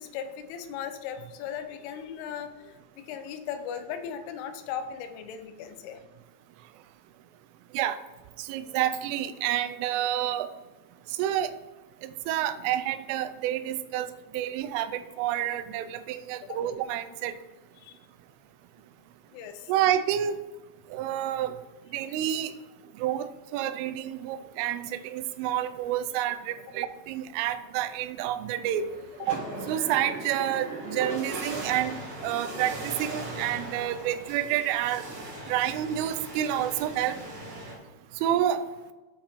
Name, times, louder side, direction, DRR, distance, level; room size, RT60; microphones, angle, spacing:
voice 1, 0.0-6.0 16.5-16.6 17.8-18.0 19.3-19.7, left 8 dB, 85° left, 8 dB, 3.3 m, -38 dB
voice 2, 8.4-10.5 11.1-11.5 12.0-17.3 19.7-20.4 20.9-21.6 21.9-22.5 23.0-28.9 29.2-29.4 29.7-35.1 35.5-37.2 38.2-38.7, right 11 dB, 90° right, 11 dB, 3.1 m, -29 dB
sound 1, 28.6-37.8, right 2 dB, 55° right, 3.3 m, -39 dB
8.8 x 5.6 x 4.4 m, 1.2 s
omnidirectional pair, 5.6 m